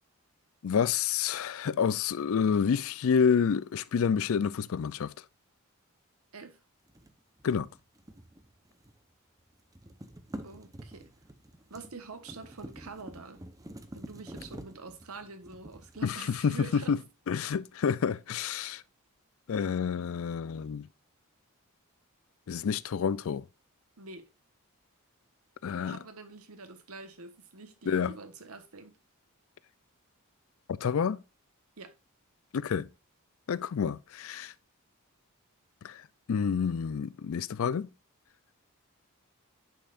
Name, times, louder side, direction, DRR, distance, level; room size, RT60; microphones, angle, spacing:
voice 1, 0.6-5.1 7.4-7.7 16.0-17.0 17.3-18.8 19.5-20.9 22.5-23.4 25.6-26.0 27.9-28.1 30.7-31.2 32.5-32.9 33.5-34.5 35.8-36.0 36.3-37.9, left 6 dB, 65° left, 0.4 m, -28 dB
sound 1, 6.9-9.1 9.4-16.7, right 1 dB, 15° right, 0.7 m, -48 dB
voice 2, 10.4-11.1 11.7-13.4 13.9-17.0 24.0-24.3 25.8-29.0 31.8-31.9, right 3 dB, 80° right, 1.2 m, -46 dB
10.0 x 5.5 x 2.5 m
head